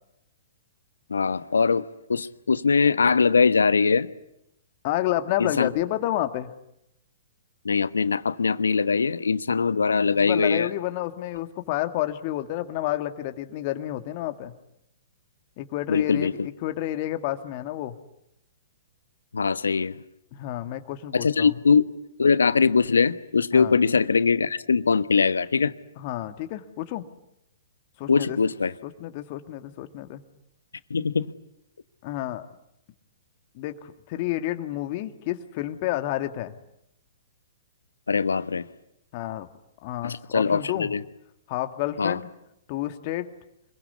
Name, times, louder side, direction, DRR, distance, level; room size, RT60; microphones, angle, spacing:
voice 1, 1.1-4.1 5.4-5.7 7.6-10.7 15.9-16.5 19.3-20.0 21.1-21.9 22.2-25.7 28.1-28.7 30.9-31.3 38.1-38.6 40.0-41.0 42.0-42.2, left 5 dB, 80° left, 14 dB, 1.2 m, -22 dB
voice 2, 4.8-6.5 10.1-14.5 15.6-18.0 20.3-21.6 23.5-23.8 26.0-27.1 28.0-28.4 28.8-30.2 32.0-32.5 33.6-36.5 39.1-39.5 39.8-40.9 41.5-42.3 42.7-43.3, left 14 dB, 45° left, 8 dB, 2.0 m, -30 dB
26.0 x 22.5 x 9.6 m, 0.81 s
figure-of-eight pair, 120°, 0 cm